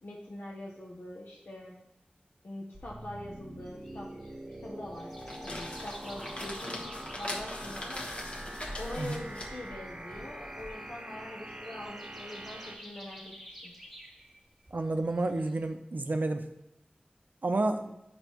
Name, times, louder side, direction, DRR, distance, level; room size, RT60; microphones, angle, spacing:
voice 1, 0.0-1.8 2.4-4.1 4.6-8.1 8.8-13.7 17.5-18.0, left 1 dB, 85° left, -3 dB, 0.8 m, -43 dB
sound 1, 2.7-12.7, right 1 dB, 35° right, 0.9 m, -44 dB
sound 2, 3.6-15.7, equal, 5° left, 1.3 m, -52 dB
sound 3, 5.0-10.7, left 1 dB, 40° left, 1.1 m, -41 dB
voice 2, 14.7-16.5 17.4-17.9, right 2 dB, 70° right, 7 dB, 0.5 m, -30 dB
9.0 x 5.9 x 3.0 m, 0.86 s
wide cardioid pair, 55°, 3 cm